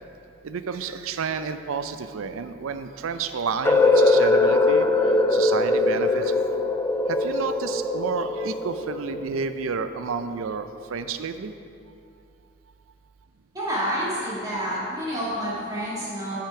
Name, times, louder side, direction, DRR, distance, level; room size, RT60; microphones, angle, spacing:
voice 1, 0.4-6.3 7.1-11.5, right 5 dB, 75° right, 10 dB, 0.4 m, -30 dB
sound 1, 3.6-9.5, left 2 dB, 10° left, 0.3 m, -21 dB
voice 2, 13.5-16.4, equal, 15° right, -8 dB, 2.2 m, -28 dB
8.8 x 5.9 x 4.8 m, 2.6 s
head